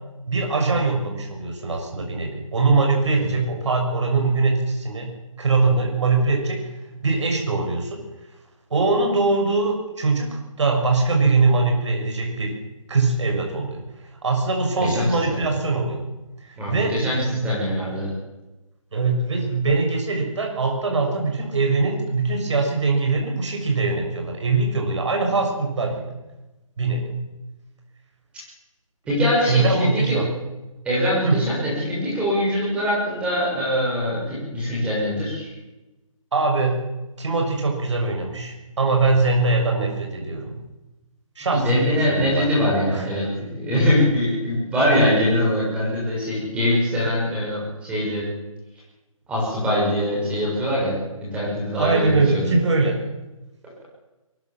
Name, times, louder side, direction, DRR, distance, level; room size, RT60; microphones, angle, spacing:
voice 1, 0.3-5.1 5.4-6.6 7.0-8.0 8.7-12.5 12.9-13.8 14.2-16.0 16.4-17.0 17.3-17.5 18.9-26.0 26.8-27.2 29.5-30.3 31.2-31.4 36.3-36.8 37.2-40.6 41.4-42.5 42.9-43.1 51.7-53.0, right 3 dB, 55° right, 2 dB, 6.5 m, -22 dB
voice 2, 14.8-15.4 16.6-18.1 29.1-30.2 30.8-35.5 41.5-48.2 49.3-52.5, left 1 dB, 5° right, -6 dB, 6.3 m, -23 dB
22.5 x 20.5 x 7.5 m, 1.0 s
hypercardioid pair, 165°, 18 cm